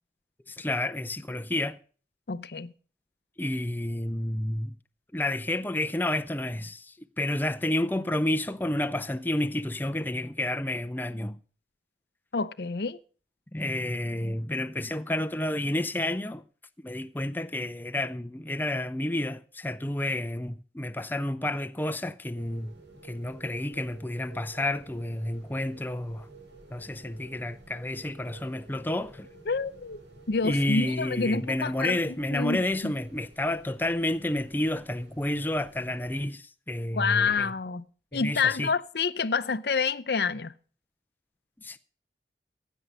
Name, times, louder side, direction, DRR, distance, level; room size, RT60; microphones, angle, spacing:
voice 1, 0.5-1.8 3.4-4.7 5.1-11.4 13.5-16.4 16.8-22.7 23.0-26.3 26.7-29.3 30.4-37.5 38.1-38.7 41.6-41.8, left 1 dB, 10° left, 0.5 m, -30 dB
voice 2, 2.3-2.7 12.3-13.0 29.5-30.0 30.3-32.9 36.9-37.8 38.1-40.5, left 5 dB, 60° left, 0.6 m, -28 dB
sound 1, 22.3-36.3, right 2 dB, 80° right, 6.7 m, -52 dB
15.5 x 9.3 x 5.5 m
head